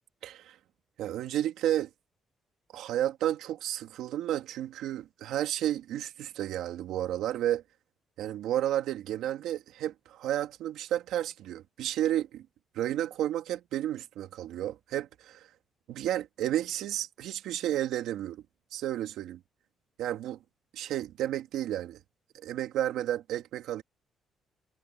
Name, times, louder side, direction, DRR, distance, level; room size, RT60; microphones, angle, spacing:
voice 1, 0.2-0.6 1.0-1.9 2.7-7.6 8.2-12.5 12.7-15.5 15.9-18.4 18.7-19.4 20.0-20.4 20.7-22.0 22.4-23.8, right 12 dB, 85° right, 2.5 m, -32 dB
cardioid pair, 90°, 0 cm